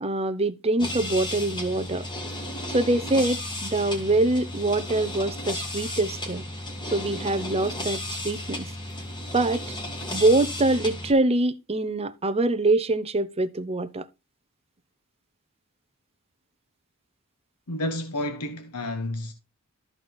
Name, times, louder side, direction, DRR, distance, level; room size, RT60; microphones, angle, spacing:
voice 1, 0.0-2.1 2.7-6.4 6.9-8.7 9.3-9.6 10.1-14.0, right 2 dB, 25° right, 0.7 m, -24 dB
sound 1, 0.8-11.1, left 1 dB, 20° left, 2.2 m, -34 dB
voice 2, 17.7-19.3, left 1 dB, 90° left, 1.3 m, -30 dB
13.5 x 4.7 x 4.3 m
head